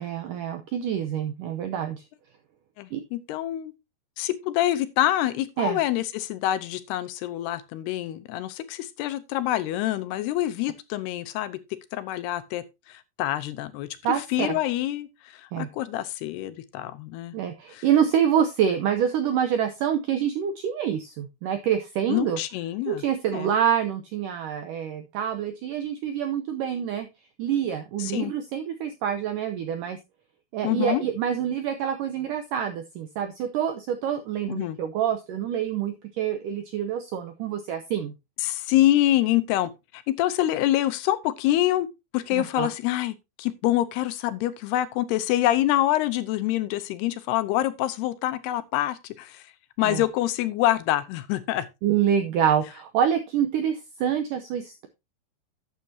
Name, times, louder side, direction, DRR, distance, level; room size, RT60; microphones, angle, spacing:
voice 1, 0.0-2.0 2.9-3.0 5.6-5.8 14.0-14.6 15.5-15.7 17.3-22.4 22.9-27.1 27.4-30.0 30.5-38.1 42.3-42.7 49.8-50.0 51.8-54.9, right 9 dB, 80° right, 1.9 m, -26 dB
voice 2, 2.8-3.7 4.2-11.6 11.9-13.9 14.2-17.4 17.7-17.8 22.1-23.0 23.3-23.5 28.0-28.3 30.6-31.0 34.5-34.8 38.4-41.9 42.1-49.4 49.8-51.7, left 14 dB, 80° left, 2.8 m, -26 dB
12.0 x 8.2 x 2.8 m
omnidirectional pair, 4.8 m